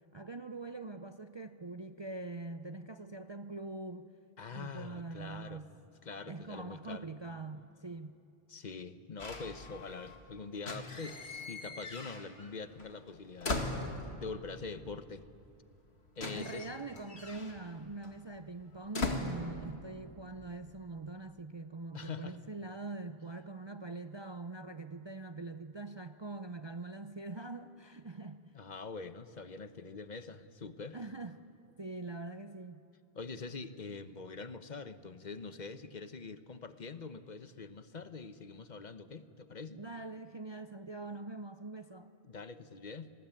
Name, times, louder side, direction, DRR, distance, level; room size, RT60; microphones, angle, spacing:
voice 1, 0.1-4.1 4.5-5.7 6.3-8.2 16.3-28.5 30.9-31.4 31.8-32.8 39.7-42.1, right 3 dB, 30° right, 9 dB, 0.5 m, -43 dB
voice 2, 4.4-5.6 6.0-7.1 8.5-13.5 14.2-15.2 16.2-16.7 21.9-22.4 28.5-31.0 33.1-39.8 42.2-43.1, left 4 dB, 45° left, 11 dB, 1.1 m, -44 dB
sound 1, 9.2-10.2 10.5-12.5 12.8-14.4 15.4-15.5 15.7-20.1 20.4-20.9, left 2 dB, 85° left, 2.4 m, -40 dB
26.5 x 20.0 x 9.1 m, 2.7 s
omnidirectional pair, 1.1 m